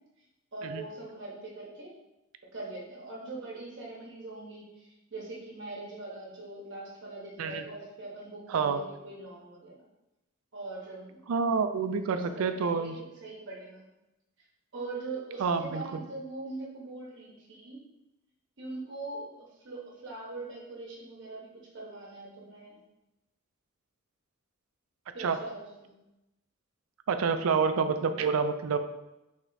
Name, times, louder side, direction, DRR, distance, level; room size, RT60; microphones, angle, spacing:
voice 1, 0.5-1.9 2.5-9.8 10.5-11.2 12.1-13.8 14.7-17.8 18.6-22.8 25.1-25.9, right 2 dB, 60° right, -4 dB, 0.9 m, -42 dB
voice 2, 8.5-8.8 11.3-13.0 15.4-16.1 25.2-25.4 27.1-28.8, right 5 dB, 80° right, 9 dB, 0.4 m, -28 dB
3.5 x 3.3 x 3.9 m, 0.93 s
head